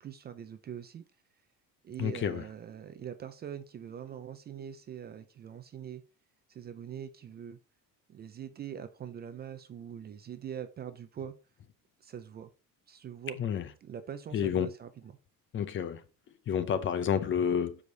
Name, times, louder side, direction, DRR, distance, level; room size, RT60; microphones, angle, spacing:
voice 1, 0.0-1.0 1.8-6.0 6.5-7.6 8.1-11.4 12.0-12.5 12.9-13.4 13.8-15.2, right 9 dB, 30° right, 0.4 m, -43 dB
voice 2, 2.0-2.4 13.4-13.6 14.3-14.7 15.5-16.0 16.5-17.8, left 8 dB, 35° left, 0.5 m, -29 dB
7.0 x 4.9 x 3.8 m
cardioid pair, 180°, 35 cm